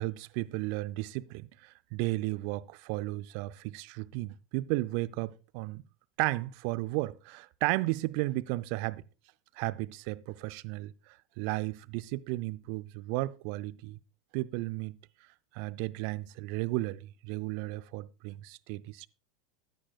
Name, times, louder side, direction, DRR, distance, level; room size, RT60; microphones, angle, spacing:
voice 1, 0.0-5.8 6.2-9.0 9.6-14.0 14.3-15.0 15.5-19.1, right 20 dB, 55° right, 0.4 m, -34 dB
14.5 x 9.7 x 2.3 m
figure-of-eight pair, 80°, 0 cm